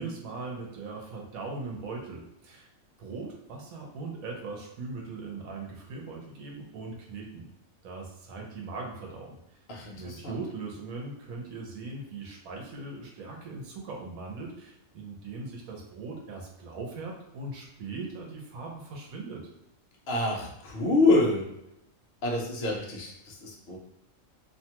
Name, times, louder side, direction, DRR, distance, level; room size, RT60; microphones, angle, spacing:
voice 1, 0.0-2.7 3.0-7.5 7.8-9.4 9.9-19.4, right 3 dB, 80° right, -1 dB, 1.2 m, -40 dB
voice 2, 9.7-10.4 20.1-21.4 22.2-23.8, left 2 dB, 55° left, -2 dB, 0.8 m, -26 dB
2.8 x 2.2 x 2.8 m, 0.82 s
omnidirectional pair, 1.4 m